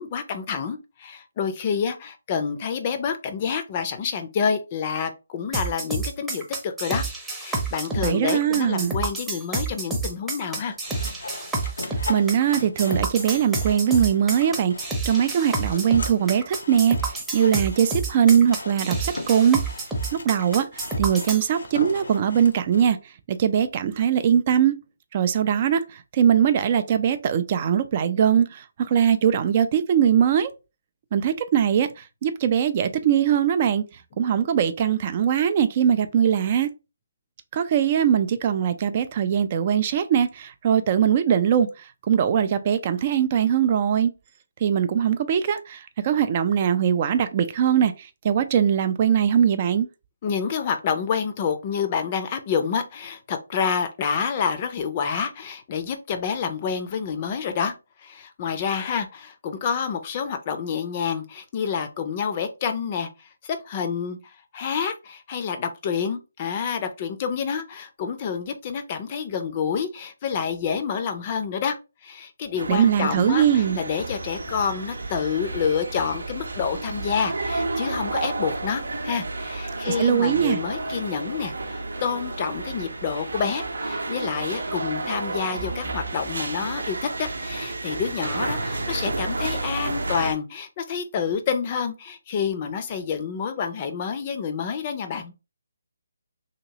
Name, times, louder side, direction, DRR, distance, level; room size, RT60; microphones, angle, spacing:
voice 1, 0.0-10.7 50.2-57.7 58.0-71.8 72.0-95.3, left 6 dB, 30° left, 0.5 m, -28 dB
sound 1, 5.5-21.5, right 3 dB, 5° right, 0.7 m, -29 dB
voice 2, 8.0-8.9 11.8-19.6 20.1-24.8 25.1-30.5 31.1-33.8 34.2-36.7 37.5-44.1 44.6-49.9 72.7-73.8 79.9-80.6, right 8 dB, 35° right, 0.3 m, -21 dB
Sawing, 10.5-23.0, left 3 dB, 75° left, 0.6 m, -39 dB
sound 2, 72.6-90.3, right 2 dB, 80° right, 0.7 m, -31 dB
2.9 x 2.9 x 2.8 m
figure-of-eight pair, 155°, 0 cm